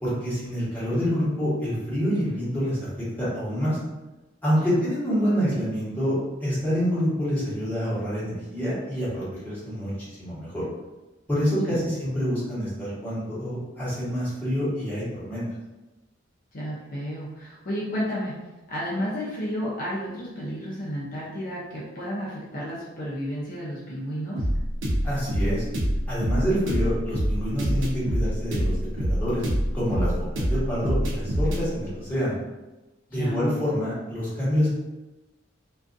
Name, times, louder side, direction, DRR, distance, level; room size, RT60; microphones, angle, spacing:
voice 1, 0.0-2.8 3.2-3.8 4.4-9.9 10.2-10.6 11.3-15.4 25.0-25.6 26.1-29.4 29.7-30.1 30.5-32.3 33.1-34.7, equal, 10° left, -11 dB, 1.1 m, -27 dB
voice 2, 16.5-18.4 18.7-24.4 33.1-33.4, equal, 50° left, -6 dB, 0.5 m, -32 dB
sound 1, 24.4-31.6, equal, 75° right, 0.6 m, -25 dB
2.4 x 2.3 x 2.5 m, 1.1 s
head